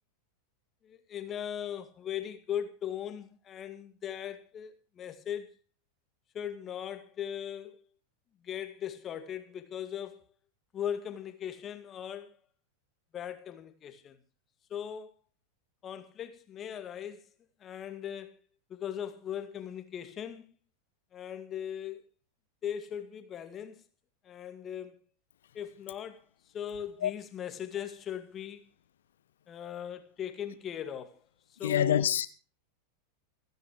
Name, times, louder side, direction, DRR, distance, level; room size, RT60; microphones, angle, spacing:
voice 1, 0.8-5.5 6.3-7.8 8.4-10.2 10.7-12.4 13.1-14.2 14.7-15.1 15.8-17.2 17.6-18.4 18.7-20.5 21.1-22.1 22.6-23.8 24.2-25.0 25.5-26.2 26.5-28.6 29.5-31.2 31.6-32.0, left 9 dB, 25° left, 2.1 m, -39 dB
voice 2, 31.6-32.3, left 10 dB, 60° left, 1.1 m, -26 dB
29.0 x 10.0 x 3.1 m
figure-of-eight pair, 90°, 0 cm